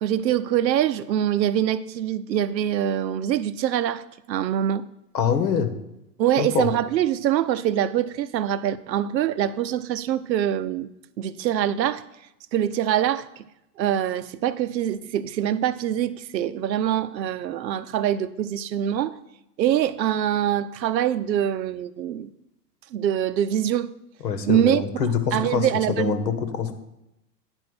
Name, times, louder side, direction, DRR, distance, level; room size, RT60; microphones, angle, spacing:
voice 1, 0.0-4.9 6.2-10.9 11.2-12.0 12.5-13.4 13.8-19.2 19.6-22.3 22.9-23.9 24.5-24.8 25.3-26.2, right 10 dB, 85° right, 0.7 m, -24 dB
voice 2, 5.1-5.7 6.4-6.7 24.2-26.7, left 7 dB, 85° left, 1.3 m, -25 dB
9.8 x 4.4 x 6.2 m
hypercardioid pair, 135°, 50 cm